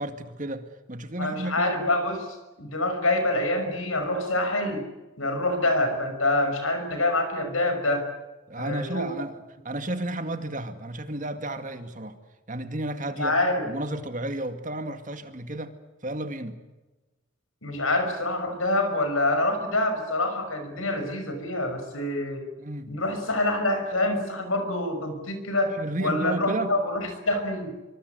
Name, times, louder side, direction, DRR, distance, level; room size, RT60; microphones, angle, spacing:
voice 1, 0.0-1.9 8.5-12.2 12.5-13.4 13.6-15.7 16.0-16.6 22.6-22.9 25.8-26.7, right 1 dB, 40° right, 8 dB, 2.1 m, -32 dB
voice 2, 1.2-4.8 5.2-8.1 8.6-9.1 13.2-13.7 17.6-22.4 22.9-25.7 26.0-27.7, left 2 dB, 80° left, 7 dB, 6.0 m, -26 dB
26.0 x 24.5 x 8.1 m, 1.1 s
head